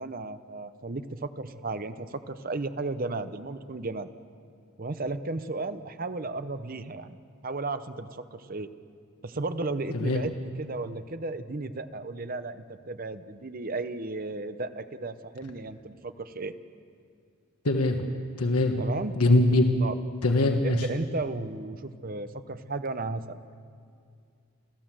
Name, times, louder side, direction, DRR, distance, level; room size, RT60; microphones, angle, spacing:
voice 1, 0.0-4.1 4.8-7.2 7.4-8.7 9.2-10.3 10.6-16.5 18.8-19.1 19.8-20.0 20.6-23.4, right 2 dB, 40° right, 11 dB, 0.8 m, -34 dB
voice 2, 17.6-18.1 18.4-18.8 19.2-19.6 20.2-20.9, left 2 dB, 85° left, 4 dB, 1.3 m, -22 dB
29.5 x 13.5 x 7.5 m, 2.3 s
head